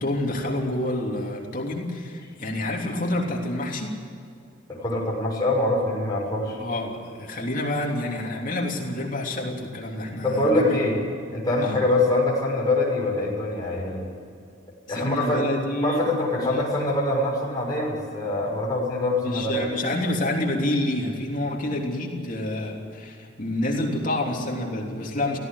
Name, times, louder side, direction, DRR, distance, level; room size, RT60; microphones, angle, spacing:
voice 1, 0.0-4.0 6.6-10.9 11.6-11.8 14.9-16.1 16.4-16.6 19.2-25.4, left 1 dB, 40° left, -1 dB, 3.3 m, -28 dB
voice 2, 4.7-6.6 10.2-11.0 11.3-14.0 14.9-15.4 15.8-19.6, left 2 dB, 20° left, -4 dB, 6.3 m, -24 dB
17.5 x 16.0 x 9.9 m, 2.4 s
head